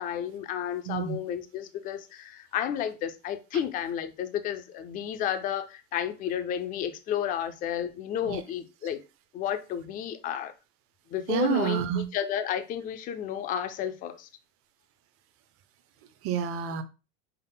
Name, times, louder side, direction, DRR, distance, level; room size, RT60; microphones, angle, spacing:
voice 1, 0.0-9.0 9.3-10.5 11.1-14.3, left 9 dB, 25° left, 0.3 m, -32 dB
voice 2, 0.9-1.2 8.2-8.4 11.3-12.0 16.2-16.8, right 10 dB, 40° right, 0.6 m, -28 dB
5.5 x 2.1 x 3.8 m
supercardioid pair, 140°, 37 cm